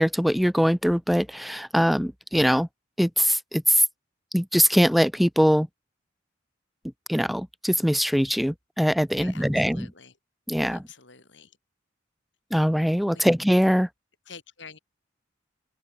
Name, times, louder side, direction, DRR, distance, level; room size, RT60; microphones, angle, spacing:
voice 1, 0.0-2.7 3.0-3.8 4.3-5.7 7.1-9.9 10.5-10.8 12.5-13.9, equal, ahead, 0.5 m, -22 dB
voice 2, 9.2-10.2 10.6-11.6 13.1-13.3 14.3-14.8, left 5 dB, 70° left, 7.8 m, -47 dB
head